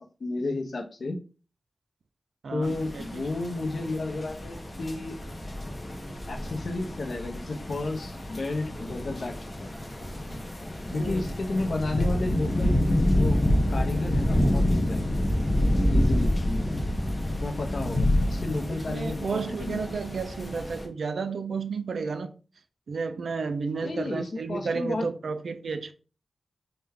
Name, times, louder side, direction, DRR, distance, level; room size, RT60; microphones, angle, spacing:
voice 1, 0.2-1.2 2.5-5.2 6.3-9.7 10.9-13.4 13.7-15.2 15.9-16.3 17.4-19.8 23.8-25.1, left 2 dB, 70° left, 0.6 m, -32 dB
voice 2, 2.4-3.3 10.3-10.4 10.9-11.3 18.7-22.3 22.9-25.9, right 5 dB, 80° right, 0.3 m, -32 dB
sound 1, 2.6-20.9, left 1 dB, 35° left, 0.7 m, -28 dB
3.3 x 2.2 x 3.4 m
cardioid pair, 65°, 0 cm